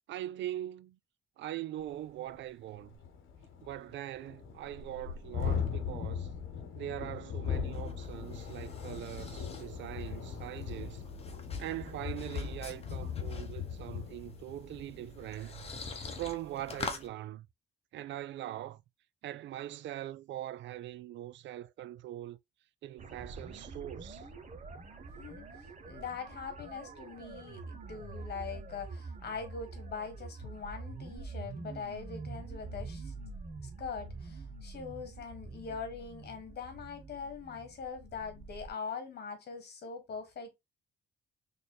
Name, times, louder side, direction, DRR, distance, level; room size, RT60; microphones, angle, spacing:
voice 1, 0.1-1.0 1.4-2.9 3.6-6.3 6.7-11.0 11.6-15.7 16.2-17.5 17.9-18.8 19.2-22.4 22.8-24.3, right 13 dB, 70° right, 0.4 m, -42 dB
Thunderstorm, 1.9-2.0 2.3-2.4 2.7-16.4, left 7 dB, 85° left, 0.9 m, -39 dB
sound 1, 7.4-17.1, left 3 dB, 30° left, 1.0 m, -46 dB
sound 2, 23.0-38.7, right 3 dB, 35° right, 0.9 m, -46 dB
voice 2, 25.2-33.1 33.6-40.5, left 5 dB, 55° left, 1.4 m, -42 dB
4.1 x 3.4 x 2.2 m
cardioid pair, 90°, 20 cm